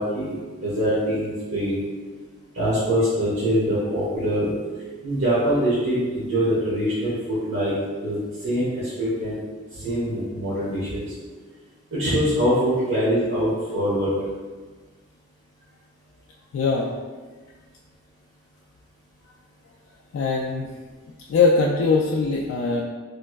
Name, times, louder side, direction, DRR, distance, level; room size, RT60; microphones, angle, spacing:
voice 1, 0.0-1.8 2.5-4.5 5.0-9.4 9.7-11.0 11.9-14.1, equal, 75° right, -12 dB, 1.1 m, -24 dB
voice 2, 16.5-16.9 20.1-20.7 21.3-22.8, left 4 dB, 70° left, -2 dB, 0.3 m, -21 dB
3.3 x 3.1 x 2.2 m, 1.4 s
head